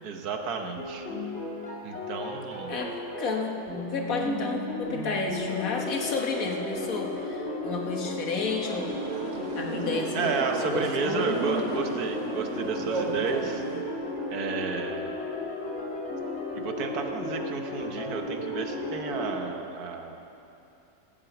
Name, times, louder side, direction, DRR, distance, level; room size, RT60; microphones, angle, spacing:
voice 1, 0.0-1.1 1.8-2.8 10.1-13.6 14.3-15.0 16.5-20.2, right 5 dB, 75° right, 5 dB, 1.5 m, -32 dB
sound 1, 0.8-19.4, left 2 dB, 45° left, 2.3 m, -34 dB
voice 2, 2.7-3.6 3.9-9.0 9.6-10.3 10.6-11.4, left 3 dB, 60° left, 1 dB, 1.8 m, -31 dB
sound 2, 8.6-13.8, right 4 dB, 55° right, 1.4 m, -34 dB
14.5 x 8.2 x 8.1 m, 2.8 s
omnidirectional pair, 1.6 m